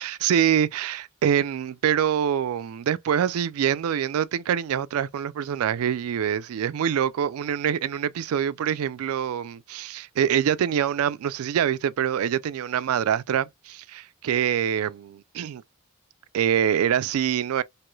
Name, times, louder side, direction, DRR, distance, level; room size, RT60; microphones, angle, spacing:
voice 1, 0.0-15.6 16.3-17.6, right 9 dB, 85° right, 0.3 m, -25 dB
3.0 x 2.9 x 2.2 m
head